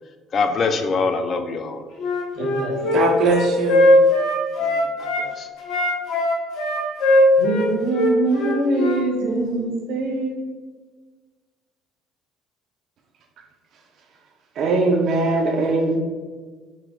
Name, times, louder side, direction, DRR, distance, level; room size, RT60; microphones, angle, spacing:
voice 1, 0.3-1.8 4.6-5.5, left 4 dB, 35° left, 7 dB, 0.3 m, -24 dB
Wind instrument woodwind instrument, 2.0-5.3 5.6-9.0, left 1 dB, 55° left, 0.7 m, -19 dB
voice 2, 2.4-2.8 7.4-10.3, right 2 dB, 90° right, -1 dB, 1.1 m, -23 dB
voice 3, 2.9-3.9 14.6-16.0, right 3 dB, 50° right, 1 dB, 0.4 m, -20 dB
4.0 x 2.7 x 3.1 m, 1.4 s
cardioid pair, 150°, 0 cm